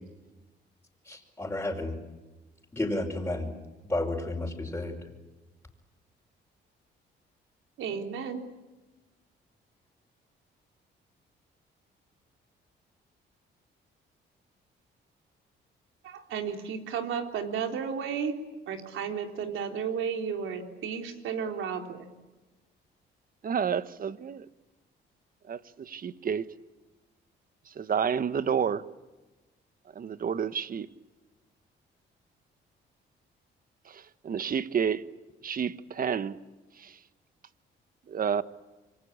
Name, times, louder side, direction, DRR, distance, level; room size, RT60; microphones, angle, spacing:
voice 1, 1.1-2.0 2.7-3.5 3.9-5.0, left 2 dB, 10° left, 5.1 m, -31 dB
voice 2, 7.8-8.4 16.0-18.4 18.7-22.1, right 7 dB, 80° right, 3.7 m, -33 dB
voice 3, 23.4-24.5 25.5-26.4 27.8-28.8 29.9-30.9 33.9-35.0 35.4-36.4 36.8-36.9 38.1-38.4, right 7 dB, 45° right, 1.2 m, -30 dB
27.0 x 23.5 x 8.6 m
cardioid pair, 90°, 20 cm